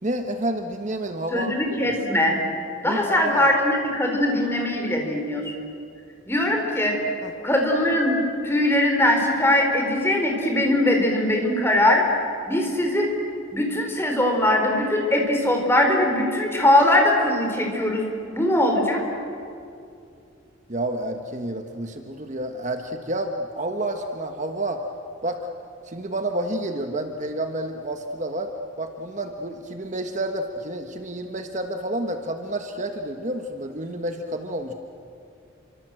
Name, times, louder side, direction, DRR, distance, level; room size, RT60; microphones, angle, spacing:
voice 1, 0.0-1.5 1.8-2.0 2.8-3.5 7.2-7.3 20.7-24.8 25.2-25.4 25.8-28.5 28.8-34.7, right 1 dB, 35° right, 5 dB, 1.3 m, -29 dB
voice 2, 1.3-2.4 2.8-5.5 6.3-6.9 7.4-8.2 8.4-12.1 12.5-13.1 13.5-18.1 18.3-19.0, left 1 dB, 10° left, 2 dB, 4.2 m, -21 dB
29.0 x 25.0 x 7.7 m, 2.5 s
head